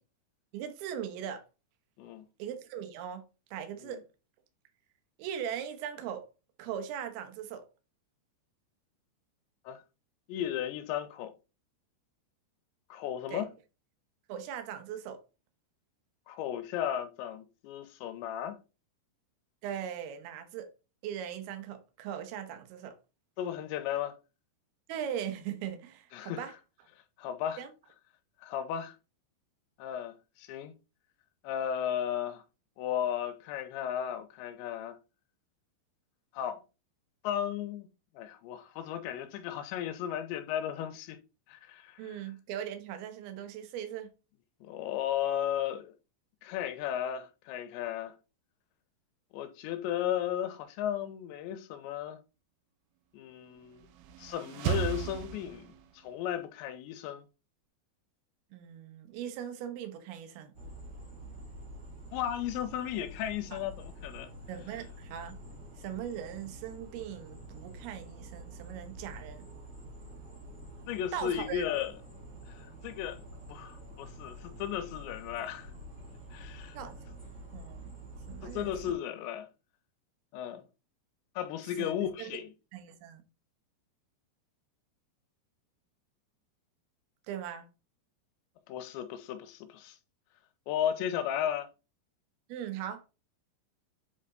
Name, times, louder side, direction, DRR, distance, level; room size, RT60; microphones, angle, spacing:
voice 1, 0.5-1.4 2.4-4.0 5.2-6.3 6.6-7.7 13.3-13.5 14.3-15.2 19.6-20.7 21.0-23.0 24.9-26.5 27.6-27.7 42.0-44.1 58.5-60.5 63.5-63.6 64.5-65.4 65.8-69.5 71.1-71.7 76.7-77.0 77.5-77.9 78.3-78.9 81.8-82.3 82.7-83.2 87.3-87.7 92.5-93.0, right 9 dB, 70° right, 2.7 m, -39 dB
voice 2, 10.3-11.3 12.9-13.5 16.3-18.6 23.4-24.2 26.1-26.5 27.2-27.6 28.4-28.9 29.8-30.7 31.4-32.4 32.8-35.0 36.3-36.6 37.2-37.9 38.2-41.2 41.5-42.2 44.6-45.9 46.4-48.1 49.3-52.2 53.1-53.9 54.2-57.2 62.1-64.3 70.9-71.9 72.5-73.2 73.5-75.7 76.3-76.8 78.4-79.5 80.3-80.6 81.4-82.5 88.7-90.0 90.7-91.7, left 10 dB, 85° left, 3.0 m, -35 dB
sound 1, 53.7-56.1, right 11 dB, 90° right, 3.0 m, -35 dB
sound 2, 60.5-78.9, right 1 dB, 30° right, 1.3 m, -47 dB
7.9 x 4.4 x 3.8 m
omnidirectional pair, 5.2 m